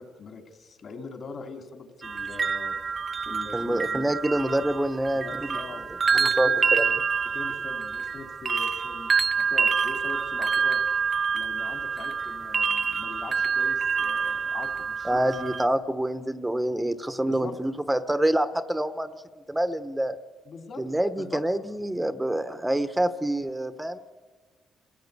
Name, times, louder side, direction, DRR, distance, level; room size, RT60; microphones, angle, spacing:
voice 1, 0.0-2.8 3.3-4.1 5.2-6.8 7.3-10.8 11.3-15.3 17.2-17.6 20.5-20.8 21.2-21.4, left 4 dB, 50° left, 4 dB, 3.3 m, -42 dB
sound 1, 2.0-15.7, right 5 dB, 40° right, 0.6 m, -27 dB
voice 2, 3.5-5.6 6.4-6.9 15.0-19.1 19.5-20.2 20.8-24.0, right 1 dB, 10° right, 11 dB, 1.0 m, -26 dB
27.0 x 16.0 x 8.3 m, 1.4 s
cardioid pair, 90°, 0 cm